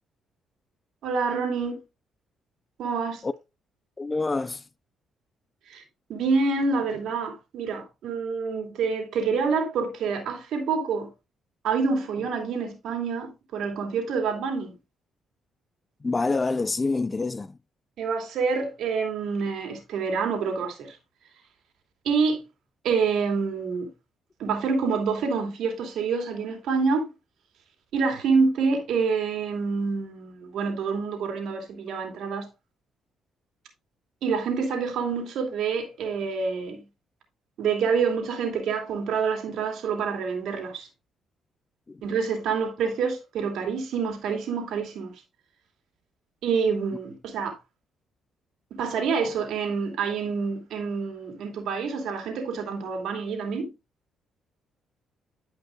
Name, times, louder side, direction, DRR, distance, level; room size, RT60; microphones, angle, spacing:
voice 1, 1.0-1.8 2.8-3.2 5.7-5.8 6.1-11.1 11.6-14.8 18.0-21.0 22.0-22.4 22.8-23.9 24.4-27.1 27.9-32.5 34.2-36.9 37.6-40.9 42.0-45.1 46.4-47.6 48.7-53.7, right 5 dB, 80° right, 2.7 m, -27 dB
voice 2, 4.0-4.6 16.0-17.5 41.9-42.0, left 3 dB, 25° left, 0.5 m, -26 dB
12.5 x 5.2 x 2.5 m
cardioid pair, 90°, 0 cm